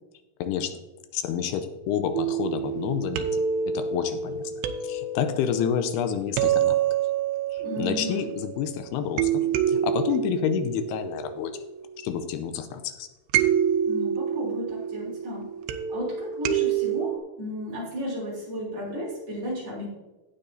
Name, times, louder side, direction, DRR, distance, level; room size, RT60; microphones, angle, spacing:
voice 1, 0.4-0.8 1.1-4.4 4.8-6.8 7.5-11.6 12.0-13.1, left 8 dB, 85° left, 9 dB, 2.6 m, -29 dB
sound 1, 2.1-8.6 9.2-12.2 13.3-17.2, right 8 dB, 90° right, 2.8 m, -27 dB
voice 2, 7.6-8.3 13.8-15.5 15.9-19.9, equal, 40° right, -6 dB, 4.3 m, -34 dB
17.0 x 6.8 x 2.7 m, 1.1 s
omnidirectional pair, 4.7 m